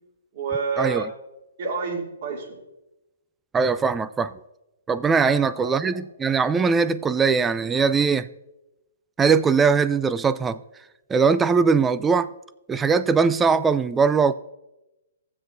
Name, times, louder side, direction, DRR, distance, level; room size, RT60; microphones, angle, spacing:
voice 1, 0.3-1.1 1.6-2.6 5.2-5.9, right 4 dB, 50° right, 2.8 m, -29 dB
voice 2, 3.5-4.3 4.9-8.3 9.2-10.6 11.1-12.3 12.7-14.3, right 5 dB, 10° right, 0.3 m, -20 dB
15.5 x 7.5 x 2.6 m
hypercardioid pair, 135°, 0 cm